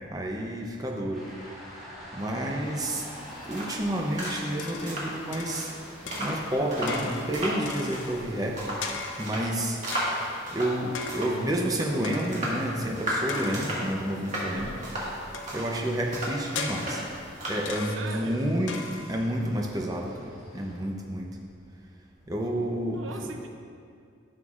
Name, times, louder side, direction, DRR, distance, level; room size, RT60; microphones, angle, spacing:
voice 1, 0.1-1.3 2.1-3.0 3.5-5.7 6.2-8.6 9.2-9.8 10.1-14.7 15.5-17.0 17.5-18.8 19.1-21.3 22.3-23.0, right 1 dB, 20° right, 0 dB, 0.6 m, -30 dB
sound 1, 1.1-20.8, equal, ahead, 1.7 m, -49 dB
sound 2, 2.9-17.9, equal, 35° right, 1.6 m, -35 dB
sound 3, 3.6-5.1 5.3-5.8 6.1-8.3 8.8-9.5 9.9-10.5 10.9-11.5 12.0-12.6 13.3-13.9 15.3-15.9 16.6-17.3 17.7-18.2 18.7-19.3, left 4 dB, 65° left, 0.6 m, -38 dB
voice 2, 14.5-14.9 17.9-18.5 22.9-23.5, right 3 dB, 70° right, 4 dB, 0.6 m, -40 dB
11.0 x 6.5 x 2.4 m, 2.4 s
head